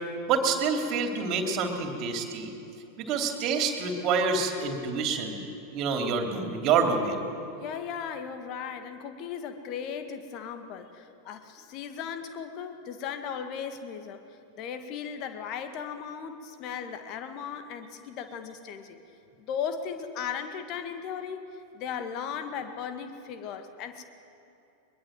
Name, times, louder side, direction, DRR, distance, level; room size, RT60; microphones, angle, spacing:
voice 1, 0.3-2.5 3.0-5.4 5.7-7.2, right 5 dB, 35° right, 5 dB, 3.1 m, -27 dB
voice 2, 7.6-14.2 14.6-19.0 19.4-21.4 21.7-24.0, left 7 dB, 40° left, 8 dB, 2.0 m, -37 dB
22.5 x 22.5 x 7.8 m, 2.8 s
figure-of-eight pair, 90°, 0 cm